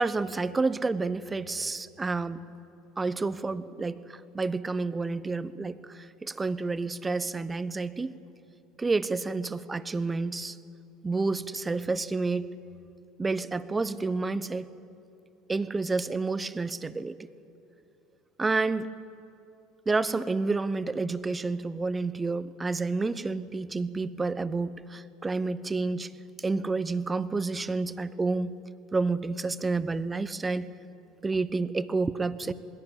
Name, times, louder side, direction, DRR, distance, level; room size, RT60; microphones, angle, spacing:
voice 1, 0.0-2.5 3.0-8.1 8.8-10.6 11.0-12.5 13.2-14.7 15.5-17.2 18.4-18.9 19.9-26.1 26.4-28.6 28.9-30.7 31.2-32.5, right 3 dB, 20° right, 15 dB, 0.9 m, -29 dB
21.0 x 16.0 x 9.9 m, 2.7 s
hypercardioid pair, 65°, 0 cm